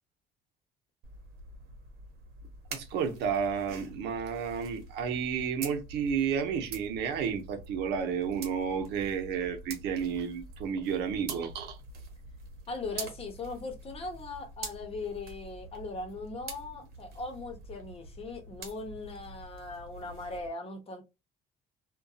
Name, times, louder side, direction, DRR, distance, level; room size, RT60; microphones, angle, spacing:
sound 1, 1.0-20.5, right 3 dB, 70° right, 0.9 m, -46 dB
voice 1, 2.7-11.8, right 7 dB, 85° right, 0.7 m, -31 dB
voice 2, 12.7-21.0, left 3 dB, 35° left, 0.9 m, -39 dB
2.6 x 2.3 x 2.4 m
cardioid pair, 110°, 17 cm